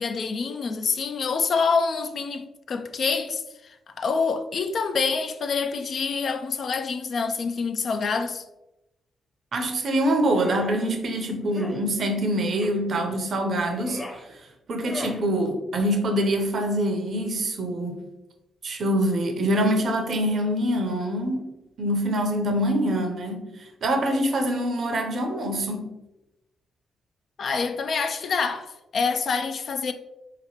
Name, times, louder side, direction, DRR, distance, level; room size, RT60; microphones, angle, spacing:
voice 1, 0.0-8.4 27.4-29.9, left 5 dB, 60° left, 0.3 m, -26 dB
voice 2, 9.5-14.0 14.7-18.0 18.6-21.5 21.8-25.9, right 1 dB, 60° right, 0.6 m, -25 dB
sound 1, 10.3-10.7 11.5-11.8 12.6-12.8 13.6-14.2 14.8-15.2, left 1 dB, 15° left, 0.7 m, -38 dB
3.8 x 2.9 x 2.9 m
hypercardioid pair, 45°, 0 cm